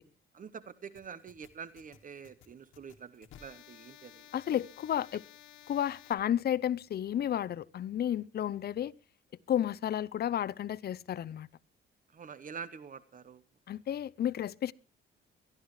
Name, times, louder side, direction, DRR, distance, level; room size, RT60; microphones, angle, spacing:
voice 1, 0.3-4.3 12.1-13.4, right 6 dB, 40° right, 0.9 m, -46 dB
sound 1, 1.0-6.1, left 11 dB, 85° left, 1.5 m, -55 dB
voice 2, 4.3-5.2 5.7-8.9 9.5-11.5 13.7-14.7, left 10 dB, 55° left, 0.6 m, -32 dB
23.0 x 12.0 x 3.2 m
cardioid pair, 90°, 20 cm